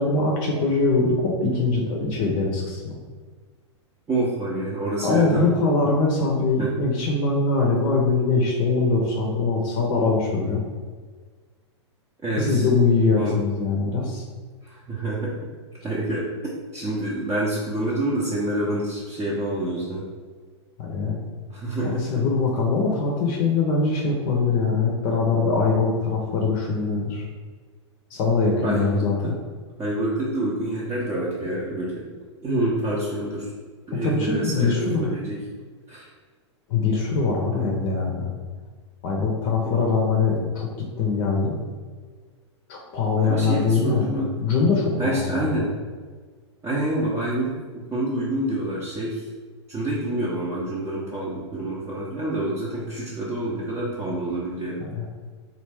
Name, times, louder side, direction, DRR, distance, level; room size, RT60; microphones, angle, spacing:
voice 1, 0.0-2.9 5.0-10.6 12.3-14.2 20.8-21.1 21.8-27.2 28.1-29.4 33.9-35.1 36.7-38.3 39.0-40.7 41.0-41.5 42.7-45.5 54.8-55.1, left 4 dB, 45° left, 0 dB, 0.7 m, -22 dB
voice 2, 4.1-5.5 6.6-6.7 12.2-12.7 13.1-13.4 14.6-15.3 15.8-16.3 16.7-20.0 21.5-22.2 28.6-29.3 29.8-32.0 32.4-33.5 33.9-35.4 35.9-36.1 37.6-37.7 39.6-39.7 43.2-44.3 45.0-45.7 46.6-49.3 49.7-54.8, right 1 dB, 20° right, -7 dB, 0.6 m, -27 dB
3.3 x 2.4 x 3.4 m, 1.5 s
hypercardioid pair, 110°, 15 cm